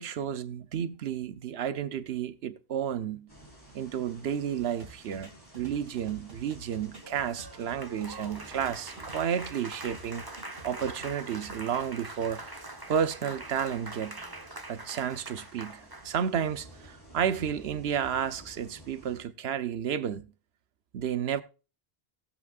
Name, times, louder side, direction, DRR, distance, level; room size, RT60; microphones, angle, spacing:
voice 1, 0.0-3.3 3.7-5.3 5.5-10.2 10.6-12.6 12.9-14.2 14.7-20.3 20.9-21.4, right 8 dB, 85° right, 1.0 m, -32 dB
sound 1, 3.3-19.2, right 1 dB, 20° left, 4.6 m, -53 dB
sound 2, 4.8-9.5 9.8-11.6, right 3 dB, 65° right, 2.8 m, -49 dB
Applause, 7.0-16.2, right 2 dB, 20° right, 1.1 m, -43 dB
18.5 x 8.3 x 2.4 m
omnidirectional pair, 1.0 m